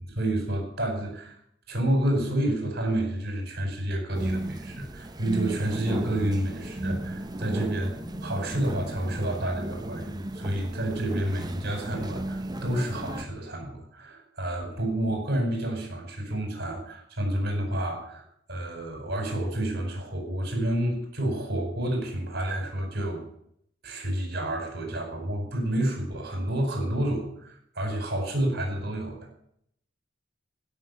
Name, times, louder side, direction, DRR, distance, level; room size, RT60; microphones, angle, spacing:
voice 1, 0.0-1.4 1.7-7.9 8.2-18.2 18.5-23.2 23.8-29.2, right 1 dB, 55° right, 2 dB, 4.9 m, -29 dB
sound 1, 4.1-13.2, right 1 dB, 20° right, 0.8 m, -35 dB
16.0 x 6.5 x 8.2 m, 0.69 s
head